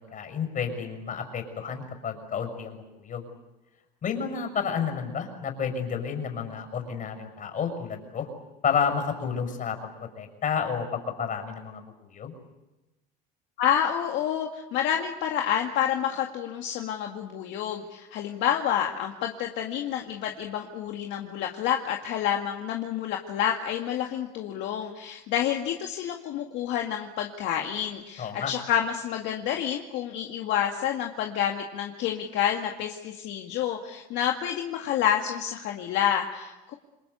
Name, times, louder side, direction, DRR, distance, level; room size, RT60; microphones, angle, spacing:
voice 1, 0.1-3.2 4.0-8.3 8.6-12.3 28.2-28.5, left 6 dB, 40° left, 6 dB, 6.6 m, -31 dB
voice 2, 13.6-36.7, left 9 dB, 65° left, 2 dB, 2.2 m, -29 dB
28.0 x 22.0 x 8.3 m, 1.0 s
supercardioid pair, 95°, 21 cm